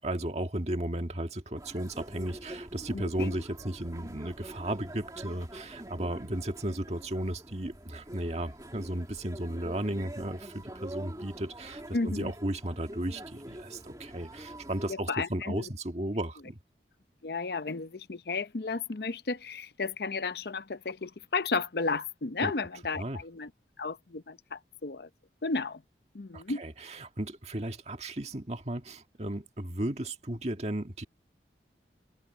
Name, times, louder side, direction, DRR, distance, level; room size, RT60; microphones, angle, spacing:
voice 1, 0.0-16.6 22.4-22.5 23.0-23.2 26.3-31.1, right 1 dB, 35° right, 1.8 m, -35 dB
sound 1, 1.6-15.0, right 1 dB, 20° right, 2.1 m, -45 dB
voice 2, 2.9-3.4 11.9-12.3 14.9-15.7 17.2-23.5 23.8-25.1 25.4-25.8 26.1-26.6, left 4 dB, 65° left, 0.8 m, -33 dB
open air
head